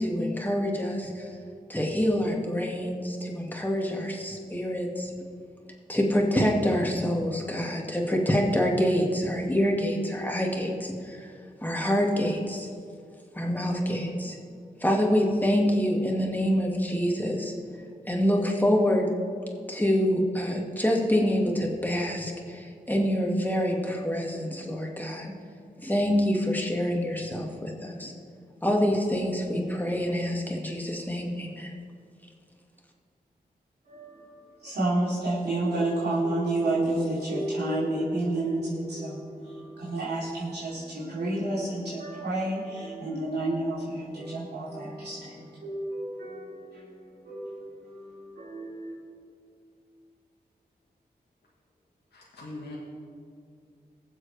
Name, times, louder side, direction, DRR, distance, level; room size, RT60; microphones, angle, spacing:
voice 1, 0.0-1.4 1.7-5.1 5.9-11.3 11.6-12.7 13.3-14.4 14.8-17.5 18.1-19.1 19.7-25.3 25.8-28.1 28.6-31.7, equal, 10° left, -1 dB, 2.4 m, -26 dB
voice 2, 33.8-49.0, right 2 dB, 80° right, -10 dB, 3.5 m, -30 dB
voice 3, 52.1-52.8, left 2 dB, 85° left, -5 dB, 1.9 m, -41 dB
21.5 x 7.5 x 3.5 m, 2.3 s
cardioid pair, 40°, 17 cm